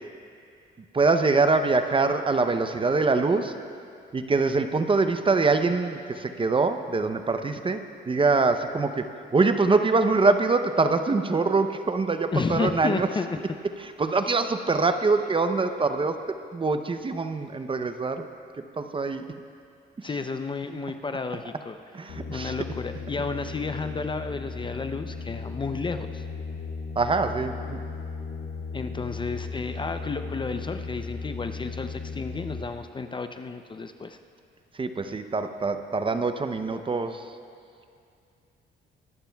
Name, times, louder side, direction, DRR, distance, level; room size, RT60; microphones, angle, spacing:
voice 1, 0.9-3.5 4.1-9.1 9.3-13.1 14.0-16.2 16.5-18.3 18.8-19.2 21.9-22.5 27.0-27.8 34.8-37.2, right 3 dB, 25° right, 8 dB, 0.6 m, -24 dB
voice 2, 12.3-13.4 20.0-21.8 22.3-26.3 28.7-34.2, left 4 dB, 25° left, 8 dB, 0.5 m, -32 dB
sound 1, 22.1-32.6, left 4 dB, 80° left, 1.3 m, -36 dB
23.0 x 11.5 x 2.3 m, 2.4 s
cardioid pair, 90°, 20 cm